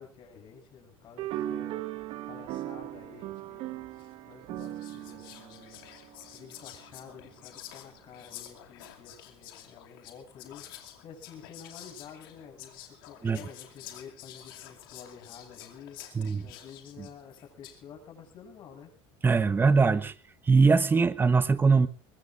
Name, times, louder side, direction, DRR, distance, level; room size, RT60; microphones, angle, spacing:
voice 1, 0.0-18.9, left 6 dB, 45° left, 7.5 m, -50 dB
sound 1, 1.2-6.7, right 13 dB, 60° right, 1.3 m, -38 dB
Whispering, 4.0-4.2 4.6-17.8, left 12 dB, 90° left, 2.7 m, -49 dB
voice 2, 19.2-20.1 20.5-21.9, right 4 dB, 20° right, 1.1 m, -22 dB
22.5 x 21.5 x 2.6 m
supercardioid pair, 120°, 11 cm